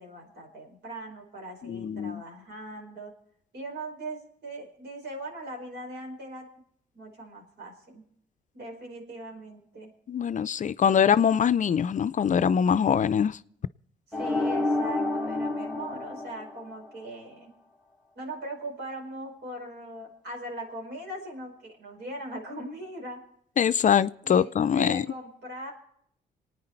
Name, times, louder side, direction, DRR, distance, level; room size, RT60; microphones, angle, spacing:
voice 1, 0.0-3.1 3.5-6.5 6.9-8.0 8.5-9.9 10.8-11.0 14.1-17.5 18.1-23.2 24.2-25.7, right 1 dB, 70° right, 4.9 m, -40 dB
voice 2, 1.6-2.2 10.1-13.4 23.6-25.0, left 8 dB, 45° left, 0.5 m, -23 dB
sound 1, 14.1-17.1, left 2 dB, 5° right, 2.5 m, -29 dB
27.5 x 9.5 x 4.5 m
supercardioid pair, 60°, 18 cm